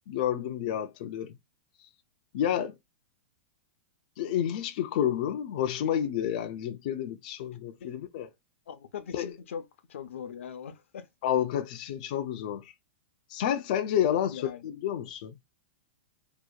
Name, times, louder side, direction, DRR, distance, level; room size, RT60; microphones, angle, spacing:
voice 1, 0.0-1.3 1.8-1.9 2.3-2.7 4.2-8.3 9.1-9.3 11.2-12.7 13.3-15.4, left 10 dB, 40° left, 0.3 m, -30 dB
voice 2, 8.7-11.1 14.3-14.7, left 7 dB, 85° left, 0.6 m, -41 dB
2.8 x 2.1 x 2.2 m
supercardioid pair, 175°, 7 cm